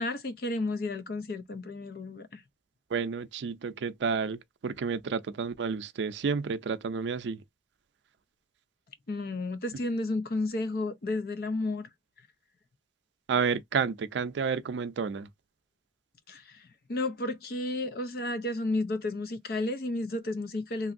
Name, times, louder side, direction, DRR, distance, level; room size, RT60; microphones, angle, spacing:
voice 1, 0.0-2.4 9.1-11.9 16.3-20.9, left 2 dB, 55° left, 0.5 m, -32 dB
voice 2, 2.9-7.4 13.3-15.3, right 5 dB, 80° right, 0.4 m, -30 dB
3.0 x 2.6 x 2.5 m
head